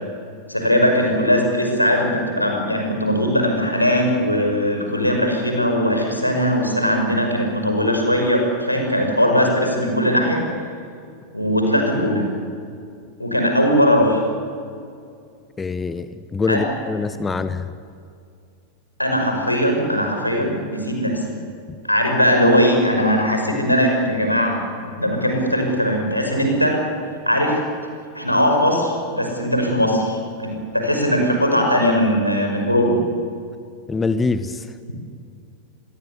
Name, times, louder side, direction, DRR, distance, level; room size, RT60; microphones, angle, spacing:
voice 1, 0.5-10.4 11.3-12.2 13.2-14.2 16.5-16.7 19.0-21.3 21.8-24.6 25.0-26.8 27.2-27.6 28.1-32.9, equal, 85° left, 2 dB, 5.6 m, -19 dB
voice 2, 15.6-17.7 33.9-34.7, left 4 dB, 15° left, 13 dB, 1.0 m, -24 dB
26.5 x 21.5 x 8.4 m, 2.3 s
figure-of-eight pair, 90°, 0 cm